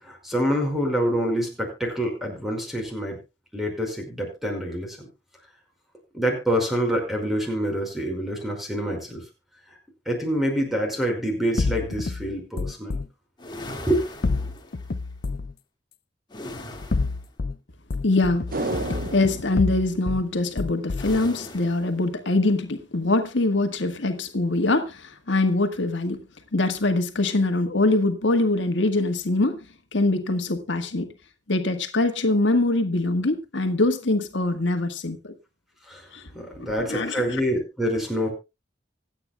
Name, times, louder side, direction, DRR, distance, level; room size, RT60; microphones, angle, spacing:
voice 1, 0.0-3.2 3.5-5.0 6.1-9.2 10.0-13.0 13.8-14.0 35.9-36.1 36.3-38.3, equal, ahead, 5.1 m, -26 dB
sound 1, 11.6-13.1 14.2-15.6 16.7-17.6 17.9-20.2 20.6-21.2, left 3 dB, 55° left, 0.5 m, -28 dB
sound 2, 13.4-15.0 16.3-17.2 18.5-19.6 21.0-21.9, left 1 dB, 25° left, 2.0 m, -39 dB
voice 2, 18.0-18.5 19.1-26.2 26.5-29.6 29.9-31.1 31.5-35.3 36.1-36.3 36.6-37.4, left 2 dB, 80° left, 1.5 m, -23 dB
sound 3, 18.5-21.0 21.3-21.4, right 2 dB, 50° right, 0.8 m, -33 dB
25.0 x 9.0 x 2.3 m
head